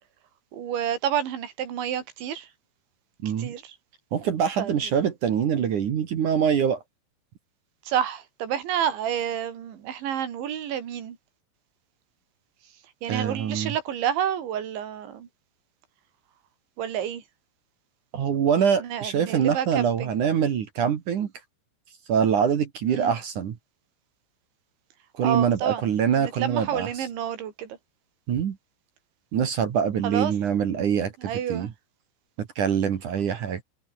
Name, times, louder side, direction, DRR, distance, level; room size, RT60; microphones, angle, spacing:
voice 1, 0.5-2.5 3.4-3.8 4.6-4.7 7.9-11.2 13.0-15.3 16.8-17.2 18.8-20.2 22.9-23.2 25.2-25.9 26.2-27.8 30.0-30.3 31.2-31.7, right 9 dB, 70° right, 5.2 m, -29 dB
voice 2, 3.2-3.5 4.1-6.8 13.1-13.7 18.1-21.3 22.1-23.6 25.2-27.0 28.3-28.6 29.3-31.7 32.4-33.6, right 8 dB, 55° right, 2.6 m, -24 dB
omnidirectional pair, 5.6 m